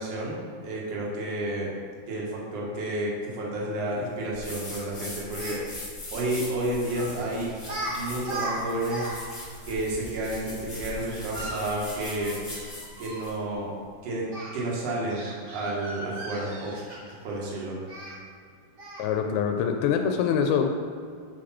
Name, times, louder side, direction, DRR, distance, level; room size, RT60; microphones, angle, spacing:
voice 1, 0.0-1.7 2.1-5.8 6.1-7.5 7.8-9.3 9.7-12.4 13.0-13.7 14.0-14.3 14.5-16.8 17.2-17.8, right 1 dB, 55° right, -4 dB, 2.1 m, -31 dB
sound 1, 4.3-13.4, left 1 dB, 30° left, 1.2 m, -40 dB
Speech, 5.4-5.6 6.9-7.2 7.6-8.0 8.2-9.1 9.4-9.5 11.1-13.2 14.3-14.5 15.1-17.2 17.9-18.1 18.8-19.1, right 1 dB, 75° right, 0.7 m, -37 dB
voice 2, 19.0-20.7, left 7 dB, 90° left, 4 dB, 2.5 m, -24 dB
8.5 x 5.1 x 4.2 m, 2.2 s
omnidirectional pair, 4.3 m